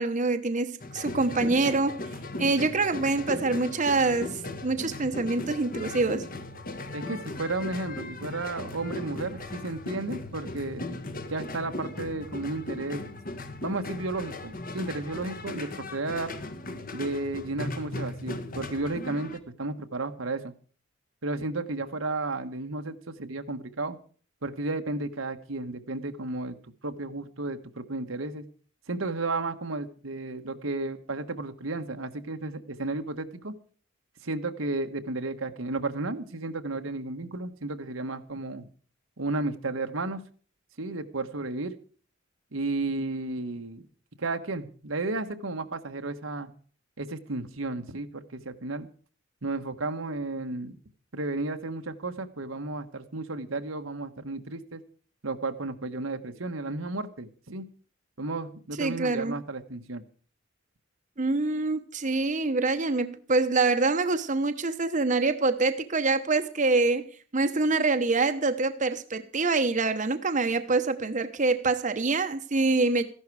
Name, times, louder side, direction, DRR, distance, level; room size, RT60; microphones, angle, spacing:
voice 1, 0.0-2.0 2.4-6.2 58.8-59.3 61.2-73.0, right 3 dB, 40° right, 8 dB, 1.0 m, -25 dB
sound 1, 0.8-19.4, left 2 dB, 45° left, 1.4 m, -37 dB
voice 2, 6.9-10.8 11.3-13.0 13.6-16.3 16.9-20.5 21.2-24.0 24.4-26.6 26.8-28.4 28.9-33.5 34.2-38.6 39.2-40.2 40.8-41.8 42.5-43.8 44.2-46.5 47.0-48.9 49.4-50.8 51.1-54.8 55.2-57.6 58.2-60.0, right 2 dB, 85° right, 7 dB, 1.4 m, -33 dB
14.5 x 11.5 x 4.8 m, 0.43 s
head